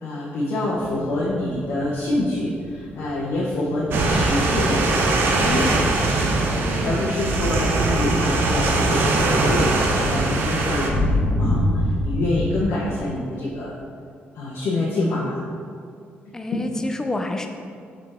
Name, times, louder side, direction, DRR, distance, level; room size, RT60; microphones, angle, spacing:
voice 1, 0.0-6.1 6.8-13.7 14.3-15.5 16.3-16.6, left 1 dB, 80° left, -6 dB, 1.0 m, -26 dB
sound 1, 0.8-6.2 6.6-12.6, left 1 dB, 35° left, 1.1 m, -27 dB
sound 2, 3.9-10.9, right 2 dB, 60° right, 0.7 m, -21 dB
voice 2, 6.6-7.2 16.3-17.5, left 2 dB, 15° left, 5 dB, 0.4 m, -29 dB
5.5 x 4.9 x 3.6 m, 2.3 s
cardioid pair, 150°, 4 cm